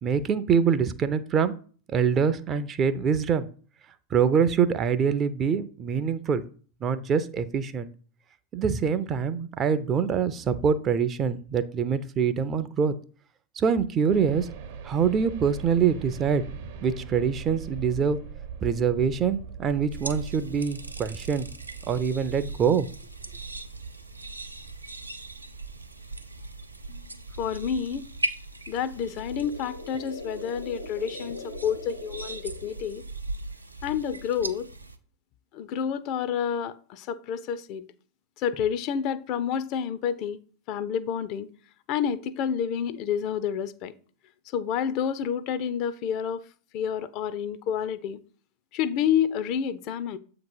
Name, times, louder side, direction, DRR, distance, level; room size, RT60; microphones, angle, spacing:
voice 1, 0.0-1.5 1.9-3.5 4.1-6.4 6.8-7.9 8.5-12.9 13.6-14.5 14.8-16.4 16.8-18.2 18.6-21.5 21.9-22.9, right 7 dB, 25° right, 0.4 m, -24 dB
sound 1, 14.1-28.2, right 6 dB, 50° right, 0.8 m, -42 dB
sound 2, 19.9-35.0, right 2 dB, 85° right, 0.5 m, -39 dB
voice 2, 27.4-28.0 28.7-33.0 33.8-34.7 35.5-37.8 38.4-40.4 40.7-41.5 41.9-43.9 44.5-46.4 46.7-48.2 48.7-50.2, left 8 dB, 40° left, 0.4 m, -29 dB
sound 3, 28.9-33.1, left 3 dB, 85° left, 1.0 m, -42 dB
7.5 x 2.9 x 5.4 m
figure-of-eight pair, 90°, 0 cm